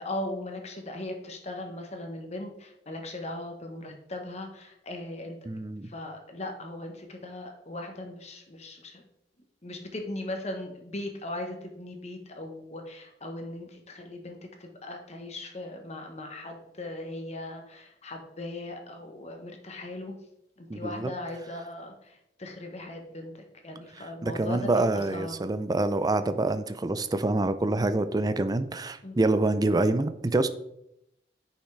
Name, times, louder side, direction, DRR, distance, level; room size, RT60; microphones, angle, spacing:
voice 1, 0.0-5.4 5.8-9.0 9.6-20.1 20.6-25.4 29.0-29.2, left 1 dB, 40° left, 3 dB, 1.1 m, -38 dB
voice 2, 5.5-5.9 20.7-21.1 24.2-30.5, right 2 dB, 20° right, 11 dB, 0.4 m, -26 dB
9.8 x 5.6 x 3.3 m, 0.81 s
head